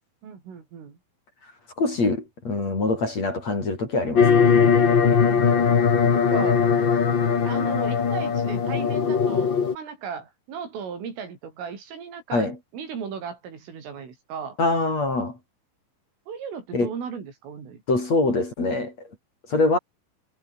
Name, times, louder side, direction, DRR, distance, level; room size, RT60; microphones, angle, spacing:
voice 1, 0.2-1.0 5.2-6.9 7.4-14.6 16.3-17.8, right 6 dB, 80° right, 7.8 m, -36 dB
voice 2, 1.8-4.7 12.3-12.6 14.6-15.4 16.7-16.9 17.9-18.9 19.5-19.8, left 2 dB, 35° left, 7.0 m, -24 dB
sound 1, 4.2-9.7, left 6 dB, 50° left, 1.4 m, -20 dB
omnidirectional pair, 5.7 m